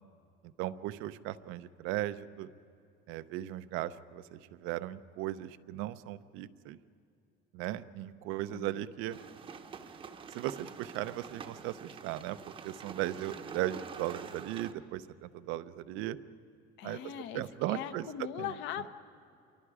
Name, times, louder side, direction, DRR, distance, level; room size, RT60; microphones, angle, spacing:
voice 1, 0.6-2.5 3.1-6.8 7.5-9.2 10.3-16.2 16.8-18.5, right 14 dB, 75° right, 12 dB, 0.8 m, -37 dB
sound 1, 9.1-14.7, right 6 dB, 25° right, 0.9 m, -46 dB
voice 2, 16.8-17.4 17.7-18.9, left 10 dB, 60° left, 10 dB, 1.1 m, -40 dB
28.0 x 23.5 x 4.9 m, 2.6 s
cardioid pair, 175°, 21 cm